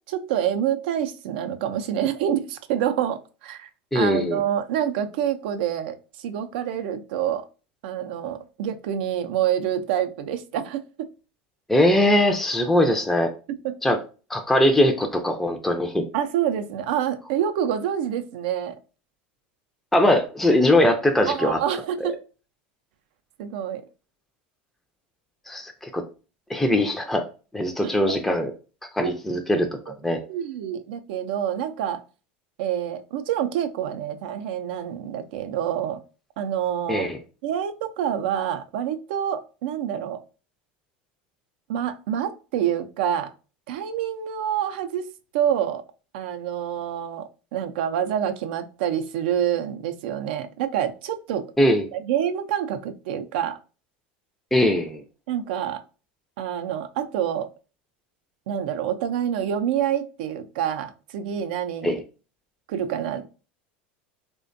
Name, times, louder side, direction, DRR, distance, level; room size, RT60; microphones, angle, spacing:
voice 1, 0.1-3.7 3.9-7.5 7.8-11.1 13.5-13.8 16.1-18.8 21.3-22.2 23.4-23.8 27.8-28.2 29.0-29.4 29.9-32.0 32.6-36.0 36.4-37.1 37.4-40.2 41.7-43.3 43.7-45.8 46.1-51.5 51.9-53.6 55.3-55.8 56.4-57.5 58.5-62.0 62.7-63.3, right 9 dB, 75° right, 0.3 m, -27 dB
voice 2, 3.9-4.4 11.7-13.3 13.8-14.0 14.3-16.0 19.9-21.6 25.5-26.0 26.5-27.2 27.5-28.5 28.9-30.2 36.9-37.2 51.6-51.9 54.5-55.0 61.8-62.0, left 1 dB, 5° left, 0.3 m, -21 dB
2.5 x 2.2 x 2.5 m
hypercardioid pair, 100°, 5 cm